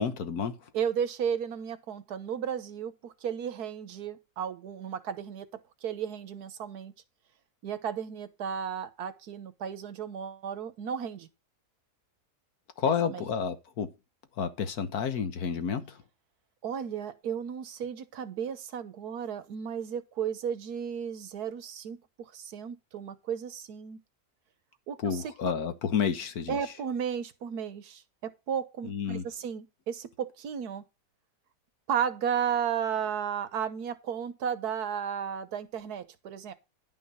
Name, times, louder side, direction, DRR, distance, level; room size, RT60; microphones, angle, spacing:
voice 1, 0.0-0.6 12.8-13.9 14.4-16.0 25.0-26.6 28.8-29.2, left 7 dB, 75° left, 1.6 m, -30 dB
voice 2, 0.7-5.5 5.8-6.9 7.6-11.3 12.8-13.2 16.6-24.0 24.9-25.3 26.5-30.8 31.9-36.5, right 8 dB, 80° right, 1.6 m, -34 dB
11.0 x 5.7 x 5.5 m
omnidirectional pair, 1.6 m